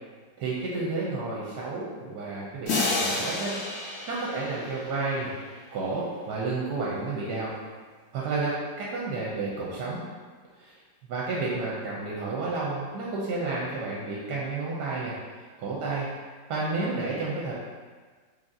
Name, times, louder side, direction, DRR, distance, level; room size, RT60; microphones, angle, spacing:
voice 1, 0.4-3.5 4.1-5.3 5.7-7.5 8.1-10.0 10.6-10.8 11.1-16.1 16.5-17.5, right 3 dB, 70° right, -5 dB, 1.1 m, -31 dB
sound 1, 2.7-5.5, left 3 dB, 85° left, 0.5 m, -30 dB
4.0 x 2.9 x 2.6 m, 1.5 s
omnidirectional pair, 2.0 m